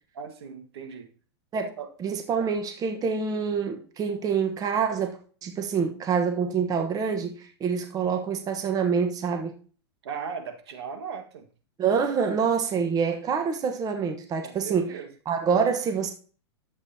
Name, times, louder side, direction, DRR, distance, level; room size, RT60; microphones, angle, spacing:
voice 1, 0.1-1.1 1.8-1.9 10.0-11.5 12.2-12.3 14.4-15.1, right 6 dB, 70° right, 1.7 m, -38 dB
voice 2, 2.0-9.5 11.8-15.0 15.3-16.1, right 6 dB, 25° right, 1.1 m, -26 dB
11.5 x 7.6 x 2.8 m
hypercardioid pair, 110°, 14 cm